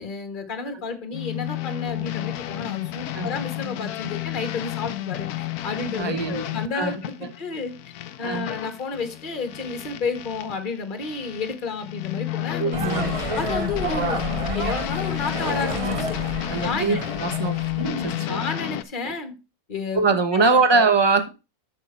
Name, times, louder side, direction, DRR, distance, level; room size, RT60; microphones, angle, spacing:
voice 1, 0.0-7.9 8.2-12.8 13.3-16.1 16.6-17.0 17.8-19.3 19.7-20.0 20.3-20.5, left 4 dB, 35° left, 7 dB, 1.5 m, -31 dB
sound 1, 1.1-10.6 11.0-18.8, left 15 dB, 85° left, 1.2 m, -31 dB
voice 2, 6.0-7.0 8.2-8.5 12.6-13.1 16.5-17.5 17.8-18.4 19.1-19.2 19.9-21.3, right 4 dB, 20° right, 8 dB, 0.9 m, -22 dB
sound 2, 12.7-18.1, right 3 dB, 40° right, 0.5 m, -30 dB
8.1 x 6.7 x 4.2 m, 0.29 s
omnidirectional pair, 1.6 m